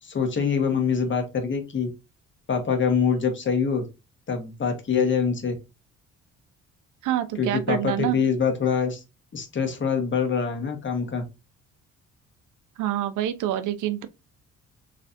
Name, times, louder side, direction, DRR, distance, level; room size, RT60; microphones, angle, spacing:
voice 1, 0.0-1.9 2.5-3.8 4.3-5.5 7.4-9.0 9.3-11.2, left 6 dB, 40° left, 1.4 m, -24 dB
voice 2, 7.0-8.2 12.8-14.1, right 12 dB, 85° right, 0.6 m, -26 dB
4.1 x 3.2 x 2.5 m
cardioid pair, 90°, 30 cm